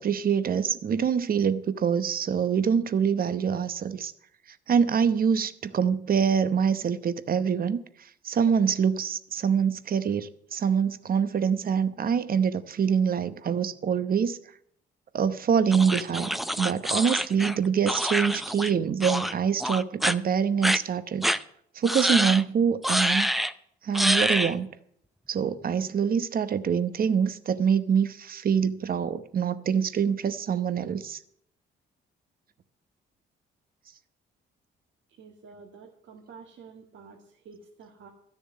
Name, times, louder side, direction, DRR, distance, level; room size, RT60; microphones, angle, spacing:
voice 1, 0.0-4.1 4.7-7.8 8.2-14.4 15.1-16.3 16.6-21.3 21.8-23.3 23.9-24.7 25.3-31.2, right 7 dB, 45° right, 0.9 m, -25 dB
sound 1, 15.7-18.7 19.0-19.3 19.6-20.1 20.6-20.8 21.2-21.4 21.8-22.4 22.8-23.5 23.9-24.5, equal, ahead, 0.6 m, -26 dB
voice 2, 35.2-38.1, right 5 dB, 70° right, 1.9 m, -49 dB
13.0 x 6.9 x 9.2 m
cardioid pair, 90°, 20 cm